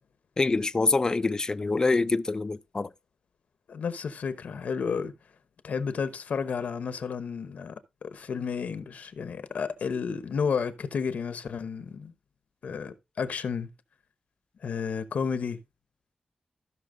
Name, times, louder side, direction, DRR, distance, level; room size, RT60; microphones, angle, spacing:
voice 1, 0.4-2.9, left 3 dB, 25° left, 0.4 m, -25 dB
voice 2, 3.7-5.1 5.6-7.7 8.0-12.1 12.6-13.7 14.6-15.6, left 6 dB, 75° left, 0.9 m, -31 dB
15.5 x 5.8 x 2.6 m
wide cardioid pair, 150°, 3 cm